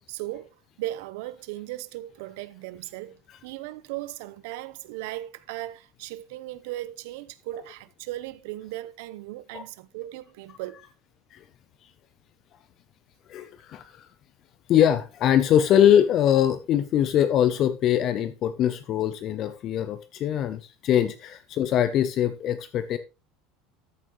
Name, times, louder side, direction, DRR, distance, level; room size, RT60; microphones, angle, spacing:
voice 1, 0.1-10.8, right 16 dB, 75° right, 0.8 m, -37 dB
voice 2, 13.3-14.1 14.7-23.0, left 10 dB, 40° left, 0.5 m, -22 dB
13.5 x 7.4 x 3.0 m
cardioid pair, 160°, 0 cm